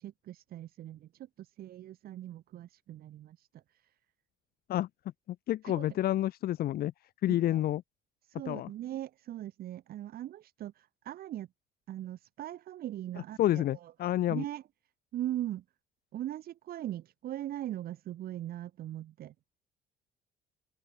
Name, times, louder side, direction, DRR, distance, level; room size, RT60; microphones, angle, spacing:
voice 1, 0.0-3.6 5.6-5.9 7.3-7.6 8.3-11.5 11.9-13.9 14.3-14.6 15.1-15.6 16.1-19.3, right 12 dB, 65° right, 1.8 m, -40 dB
voice 2, 5.3-6.9 7.2-7.8 8.5-8.7 13.4-14.4, left 13 dB, 65° left, 1.3 m, -29 dB
cardioid pair, 110°, 17 cm